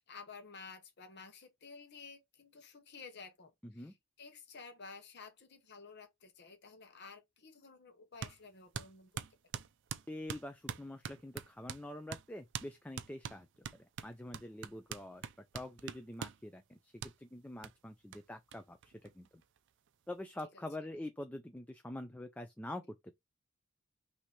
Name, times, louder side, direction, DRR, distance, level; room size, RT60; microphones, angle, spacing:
voice 1, 0.0-9.1 20.5-20.9, left 4 dB, 50° left, 0.9 m, -53 dB
sound 1, 8.2-8.4 8.7-11.8 12.1-12.3 12.5-12.7 13.0-16.4 17.0-17.1 17.6-17.7 18.1-18.2 18.5-18.6 18.8-19.6, right 7 dB, 60° right, 0.4 m, -43 dB
voice 2, 10.1-13.5 13.8-16.9 17.2-19.3 20.1-23.1, left 1 dB, 5° left, 0.4 m, -45 dB
5.8 x 2.7 x 3.1 m
head